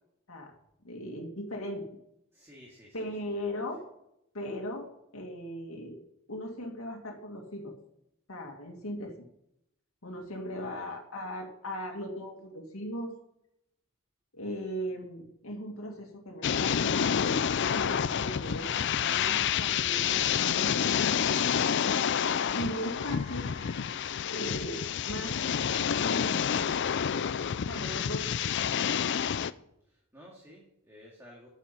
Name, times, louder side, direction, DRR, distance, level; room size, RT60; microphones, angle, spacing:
voice 1, 0.8-1.8 2.9-3.8 4.3-4.9 5.1-6.0 6.3-7.8 8.3-9.1 10.0-13.1 14.3-22.2 22.5-23.5 24.2-25.4 26.0-26.5 27.7-28.3, equal, 85° left, 1 dB, 2.1 m, -38 dB
voice 2, 2.3-3.1 3.4-3.5 10.5-10.9 29.8-31.5, equal, 15° right, -3 dB, 2.3 m, -53 dB
sound 1, 16.4-29.5, left 8 dB, 55° left, 0.4 m, -28 dB
Wind instrument woodwind instrument, 22.9-28.8, left 5 dB, 40° left, 1.2 m, -56 dB
9.9 x 7.3 x 8.3 m, 0.80 s
head